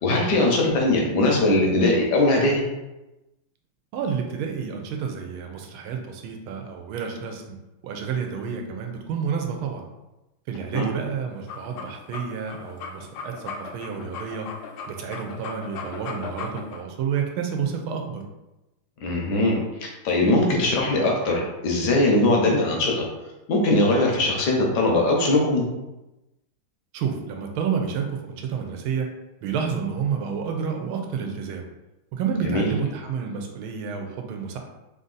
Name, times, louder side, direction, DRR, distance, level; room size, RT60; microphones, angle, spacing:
voice 1, 0.0-2.6 10.7-10.9 19.0-19.6 20.0-23.0 23.5-25.6 32.4-32.7, left 2 dB, 65° left, 0 dB, 1.2 m, -20 dB
voice 2, 3.9-7.6 7.8-9.8 10.5-14.5 14.9-18.2 26.9-29.1 29.4-31.7 32.1-34.6, right 6 dB, 80° right, 3 dB, 1.5 m, -29 dB
sound 1, 11.3-16.8, left 5 dB, 90° left, 1.4 m, -37 dB
3.7 x 2.6 x 3.8 m, 1.0 s
omnidirectional pair, 2.3 m